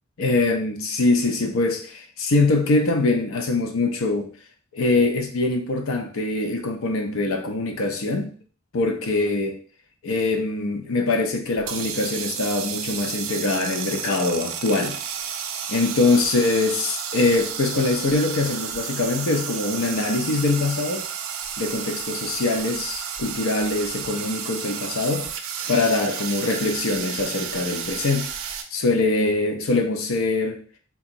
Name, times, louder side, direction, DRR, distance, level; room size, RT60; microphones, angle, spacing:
voice 1, 0.2-4.2 4.7-8.3 8.7-9.6 10.0-15.0 15.7-21.0 21.6-25.3 25.7-28.3 28.7-30.6, left 3 dB, 90° left, 0.6 m, -23 dB
sound 1, 11.6-28.6, right 8 dB, 90° right, 0.4 m, -32 dB
3.4 x 2.9 x 2.6 m
head